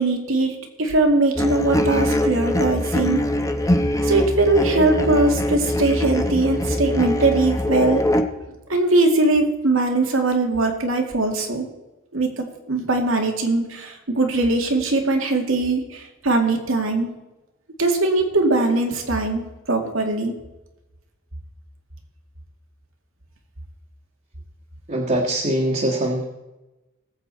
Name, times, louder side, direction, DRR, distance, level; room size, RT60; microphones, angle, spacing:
voice 1, 0.0-3.2 4.0-8.0 8.7-11.7 12.1-17.1 17.8-19.4 19.7-20.3, right 2 dB, 90° right, 3 dB, 2.2 m, -21 dB
sound 1, 1.4-8.2, left 1 dB, 15° left, 0.9 m, -22 dB
voice 2, 24.9-26.3, right 1 dB, 45° right, -4 dB, 1.6 m, -22 dB
19.5 x 8.0 x 4.1 m, 1.0 s
head